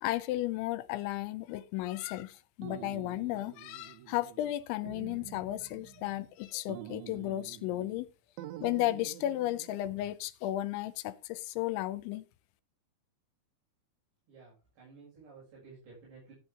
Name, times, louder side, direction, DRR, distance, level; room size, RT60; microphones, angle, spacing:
voice 1, 0.0-8.1 8.6-12.3, left 15 dB, 80° left, 3.0 m, -34 dB
sound 1, 2.6-4.6 4.9-6.3 6.7-8.1 8.4-9.7, right 13 dB, 80° right, 3.1 m, -47 dB
voice 2, 14.3-16.3, right 4 dB, 65° right, 8.5 m, -54 dB
15.0 x 8.5 x 3.6 m
omnidirectional pair, 5.4 m